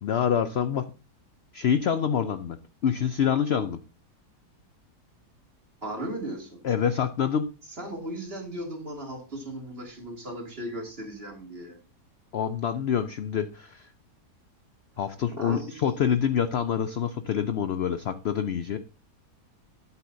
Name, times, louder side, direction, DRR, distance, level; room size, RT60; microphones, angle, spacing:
voice 1, 0.0-0.9 1.5-2.6 2.8-3.8 6.6-7.5 12.3-13.9 15.0-18.8, left 8 dB, 65° left, 11 dB, 0.6 m, -26 dB
voice 2, 5.8-6.6 7.8-11.8 15.3-15.9, right 1 dB, 35° right, 1 dB, 2.7 m, -36 dB
12.5 x 8.2 x 2.7 m, 0.33 s
omnidirectional pair, 1.7 m